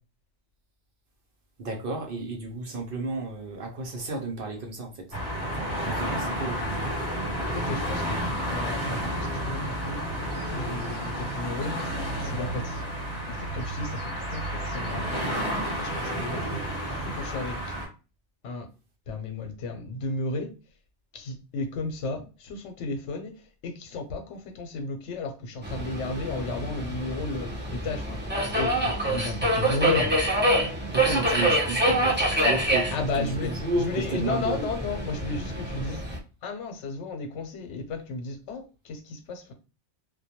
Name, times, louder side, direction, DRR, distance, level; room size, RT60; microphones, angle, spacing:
voice 1, 1.6-5.2 5.6-6.9 30.9-34.7, right 2 dB, 60° right, 0.6 m, -32 dB
sound 1, 5.1-17.9, right 1 dB, 20° left, 0.9 m, -31 dB
voice 2, 7.5-8.2 8.5-10.0 10.5-11.8 12.2-12.8 13.3-15.1 15.7-16.6 17.0-17.6 18.4-18.7 19.1-20.5 21.1-23.3 23.6-28.2 28.5-30.1 32.9-33.5 33.8-36.1 36.4-39.5, left 3 dB, 80° left, 0.9 m, -33 dB
Subway metro underground, 25.6-36.2, right 1 dB, 15° right, 0.3 m, -26 dB
2.2 x 2.1 x 2.8 m
omnidirectional pair, 1.2 m